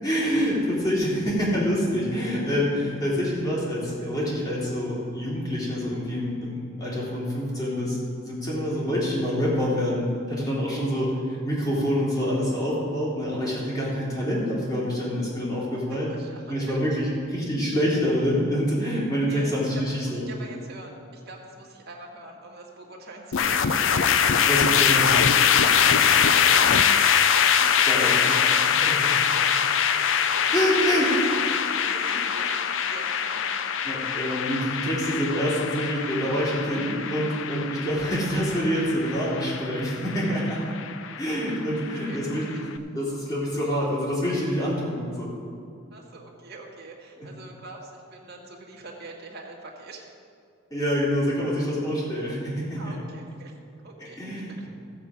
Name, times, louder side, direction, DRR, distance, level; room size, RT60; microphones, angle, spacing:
voice 1, 0.0-8.0 8.3-16.1 16.5-20.3 24.4-25.1 27.9-28.1 30.5-31.1 33.8-40.6 41.2-42.6 42.9-45.3 47.2-47.3 50.7-52.9 54.2-54.6, equal, 20° left, -7 dB, 3.1 m, -26 dB
voice 2, 15.7-16.8 19.3-23.8 26.2-29.5 30.1-30.6 31.1-33.5 41.7-41.8 42.1-42.6 45.9-50.0 52.8-53.6 53.8-54.7, right 2 dB, 50° right, -1 dB, 1.8 m, -44 dB
sound 1, 23.3-42.6, left 7 dB, 60° left, 0.5 m, -23 dB
14.5 x 7.9 x 5.0 m, 2.4 s
head